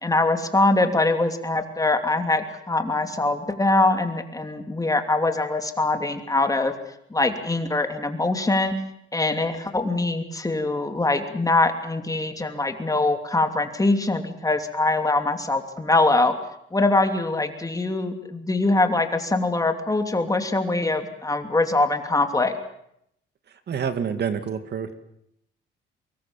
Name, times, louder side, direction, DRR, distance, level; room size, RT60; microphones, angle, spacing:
voice 1, 0.0-6.7 7.1-8.7 9.1-16.3 16.7-22.5, left 2 dB, 15° left, 6 dB, 2.9 m, -23 dB
voice 2, 23.7-24.9, right 7 dB, 55° right, 9 dB, 2.3 m, -27 dB
24.5 x 21.5 x 7.3 m, 0.75 s
cardioid pair, 90°, 20 cm